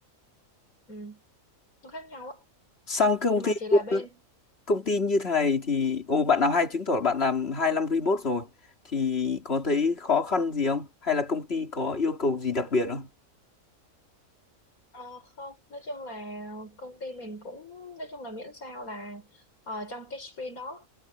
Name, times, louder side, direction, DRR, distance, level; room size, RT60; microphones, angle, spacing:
voice 1, 0.9-1.2 1.8-2.4 3.3-4.1 14.9-20.9, left 1 dB, 85° left, 6.2 m, -40 dB
voice 2, 2.9-4.0 4.7-8.5 8.9-13.1, left 4 dB, 45° left, 3.4 m, -25 dB
omnidirectional pair, 1.5 m